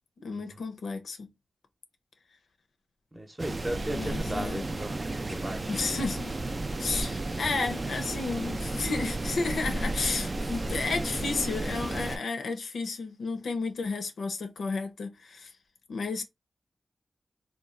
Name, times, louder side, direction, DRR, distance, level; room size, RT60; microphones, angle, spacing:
voice 1, 0.2-1.3 3.9-4.6 5.7-6.4 6.8-15.5 15.9-16.2, left 4 dB, 85° left, 0.5 m, -32 dB
voice 2, 3.1-5.0 5.3-5.7, right 1 dB, 25° right, 0.7 m, -35 dB
sound 1, 3.4-12.2, right 2 dB, 45° right, 0.3 m, -33 dB
2.9 x 2.2 x 2.4 m
cardioid pair, 40°, 0 cm